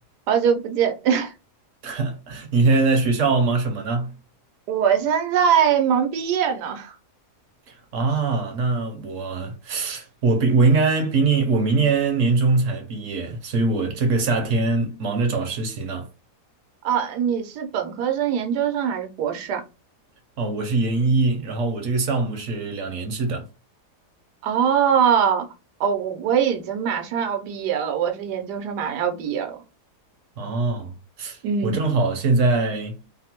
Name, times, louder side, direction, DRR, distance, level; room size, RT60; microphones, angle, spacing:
voice 1, 0.3-1.3 4.7-6.9 16.8-19.6 24.4-25.5 25.8-29.5 31.4-31.8, right 8 dB, 90° right, 1.2 m, -22 dB
voice 2, 1.8-4.2 7.7-16.1 20.4-23.5 30.4-30.9 31.2-33.0, right 3 dB, 60° right, 0.9 m, -22 dB
2.9 x 2.1 x 2.8 m
omnidirectional pair, 1.7 m